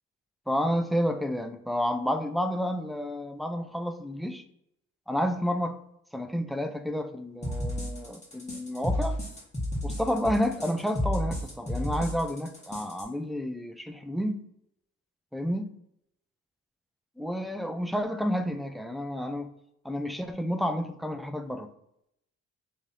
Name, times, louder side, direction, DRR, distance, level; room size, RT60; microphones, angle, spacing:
voice 1, 0.5-4.4 5.1-5.8 6.1-9.2 9.8-14.4 15.3-15.7 17.2-19.5 19.8-21.7, equal, ahead, 6 dB, 0.3 m, -30 dB
sound 1, 7.4-13.0, left 1 dB, 20° left, 1.3 m, -31 dB
3.1 x 2.7 x 3.8 m, 0.77 s
cardioid pair, 90°, 30 cm